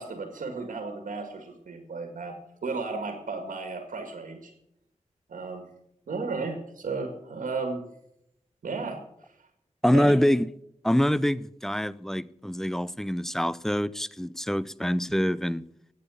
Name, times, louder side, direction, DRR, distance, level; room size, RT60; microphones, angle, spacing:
voice 1, 0.0-2.4 2.6-4.5 5.3-5.7 6.1-7.8 8.6-9.0 9.9-10.1, right 4 dB, 90° right, 1.9 m, -34 dB
voice 2, 9.8-10.5 10.8-15.7, equal, 5° left, 0.6 m, -25 dB
14.0 x 9.1 x 7.0 m
cardioid pair, 60°, 13 cm